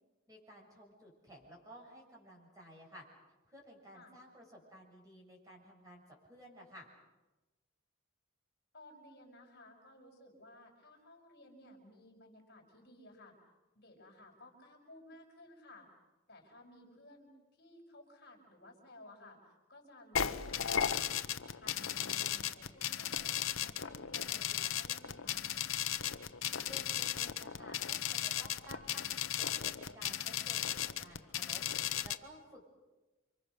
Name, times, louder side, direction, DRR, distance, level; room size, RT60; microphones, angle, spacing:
voice 1, 0.3-3.0 3.5-6.9 26.6-32.7, equal, 15° right, -1 dB, 7.0 m, -55 dB
voice 2, 8.7-13.3 13.7-15.9 16.3-21.2 21.6-25.8, left 1 dB, 50° left, 0 dB, 5.5 m, -57 dB
sound 1, 20.2-32.2, left 10 dB, 85° left, 1.0 m, -36 dB
29.0 x 25.5 x 6.7 m, 1.1 s
head